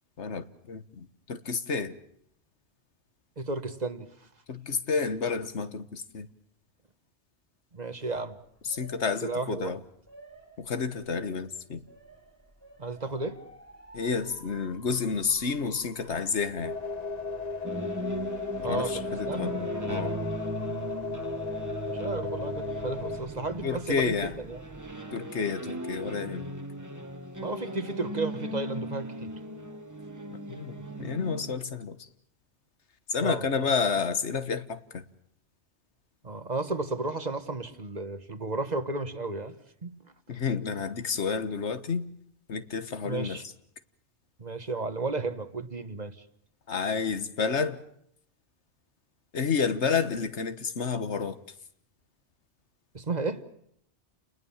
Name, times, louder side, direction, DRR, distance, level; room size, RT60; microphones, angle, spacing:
voice 1, 0.2-1.9 4.5-6.3 8.6-9.8 10.6-11.8 13.9-16.7 18.6-20.2 23.6-24.4 25.1-26.5 30.5-32.1 33.1-35.0 40.3-42.1 42.5-43.4 46.7-47.8 49.3-51.4, left 5 dB, 85° left, 1.7 m, -30 dB
voice 2, 3.4-4.1 7.7-8.4 9.2-9.7 12.8-13.4 18.6-19.5 21.9-24.6 27.4-29.3 33.2-33.4 36.2-39.5 39.8-39.9 43.0-43.4 44.4-46.2 52.9-53.4, right 3 dB, 40° right, 1.5 m, -33 dB
Motor vehicle (road) / Siren, 8.4-25.0, right 1 dB, 15° left, 2.7 m, -53 dB
sound 1, 16.6-23.2, left 4 dB, 35° left, 1.3 m, -35 dB
sound 2, 17.6-31.5, right 1 dB, 15° right, 1.4 m, -38 dB
30.0 x 20.0 x 7.3 m
omnidirectional pair, 1.1 m